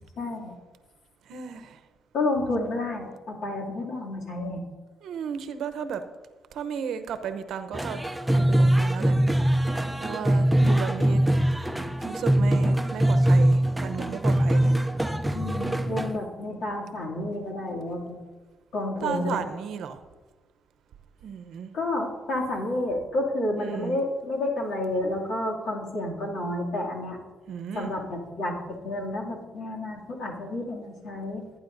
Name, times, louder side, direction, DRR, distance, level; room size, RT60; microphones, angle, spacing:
voice 1, 0.2-0.5 2.1-4.6 10.6-10.8 15.3-18.2 18.7-19.4 21.7-27.2 27.7-31.4, left 1 dB, 70° left, -2 dB, 2.5 m, -30 dB
voice 2, 1.3-1.8 5.0-6.0 6.5-8.0 8.3-9.2 10.0-11.2 12.0-14.7 19.0-20.0 21.2-21.7 23.6-24.0 27.5-27.9, right 7 dB, 75° right, 10 dB, 0.7 m, -34 dB
sound 1, 7.7-16.2, right 1 dB, 5° right, 0.6 m, -22 dB
17.5 x 9.5 x 2.6 m, 1.3 s
cardioid pair, 90°, 0 cm